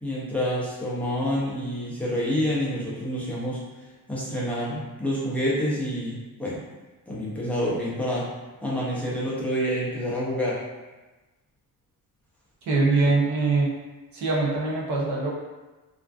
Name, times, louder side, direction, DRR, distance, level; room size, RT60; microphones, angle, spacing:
voice 1, 0.0-6.6 7.1-8.3 8.6-10.6, equal, 5° left, -8 dB, 0.4 m, -28 dB
voice 2, 12.7-13.7 14.1-15.3, right 3 dB, 50° right, -3 dB, 0.6 m, -23 dB
2.4 x 2.4 x 2.3 m, 1.2 s
cardioid pair, 175°, 37 cm